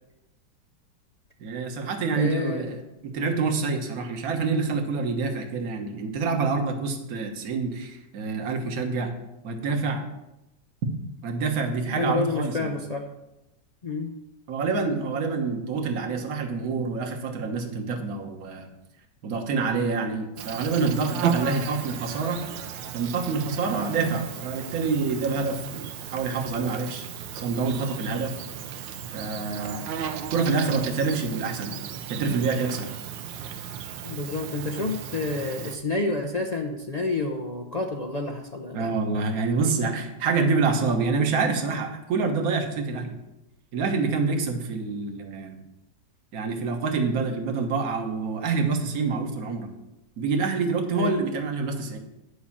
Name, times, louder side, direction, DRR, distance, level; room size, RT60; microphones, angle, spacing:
voice 1, 1.4-2.8 3.0-9.1 9.4-10.0 11.2-12.7 14.5-18.7 19.2-22.4 22.9-27.0 27.3-28.4 29.1-29.8 30.3-31.8 32.1-32.9 38.7-43.2 43.7-45.6 46.3-49.7 50.2-52.0, right 4 dB, 55° right, 4 dB, 1.6 m, -27 dB
voice 2, 2.1-2.7 11.9-13.1 13.8-14.1 34.0-39.0 50.9-51.2, left 3 dB, 90° left, 1 dB, 0.3 m, -29 dB
Insect, 20.4-35.8, right 8 dB, 90° right, 1.5 m, -35 dB
10.0 x 5.5 x 7.2 m, 0.93 s
omnidirectional pair, 1.9 m